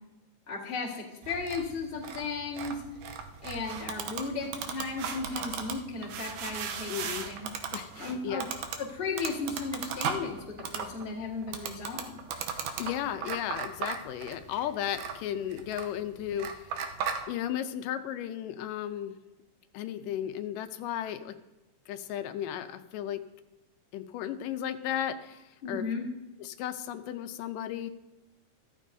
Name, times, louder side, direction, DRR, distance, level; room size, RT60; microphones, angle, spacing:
voice 1, 0.5-2.8 3.4-7.5 8.0-8.5 8.8-12.2 25.6-26.1, left 4 dB, 25° left, -3 dB, 1.3 m, -35 dB
sound 1, 1.2-17.2, right 6 dB, 80° right, 2.3 m, -37 dB
voice 2, 6.9-7.3 7.7-8.5 12.8-16.7 17.3-19.1 19.7-21.4 21.9-23.2 23.9-26.0 26.4-27.9, left 10 dB, 85° left, 9 dB, 2.3 m, -35 dB
13.5 x 13.5 x 2.7 m, 1.0 s
omnidirectional pair, 3.8 m